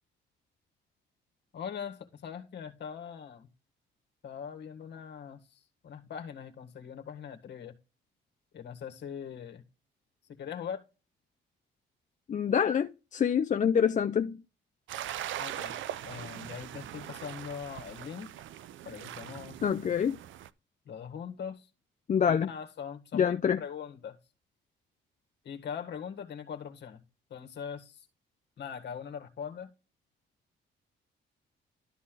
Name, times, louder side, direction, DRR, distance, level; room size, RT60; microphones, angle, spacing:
voice 1, 1.5-3.5 4.2-7.7 8.5-9.6 10.3-10.8 15.4-15.8 16.0-18.3 18.9-19.6 20.9-21.7 22.3-24.2 25.4-27.0 27.3-28.1 28.6-29.7, left 7 dB, 60° left, 1.7 m, -41 dB
voice 2, 12.3-14.4 19.6-20.2 22.1-22.5 23.1-23.6, left 7 dB, 40° left, 0.5 m, -26 dB
sound 1, 14.9-20.5, right 11 dB, 75° right, 0.6 m, -41 dB
12.5 x 4.2 x 3.9 m
cardioid pair, 90°, 20 cm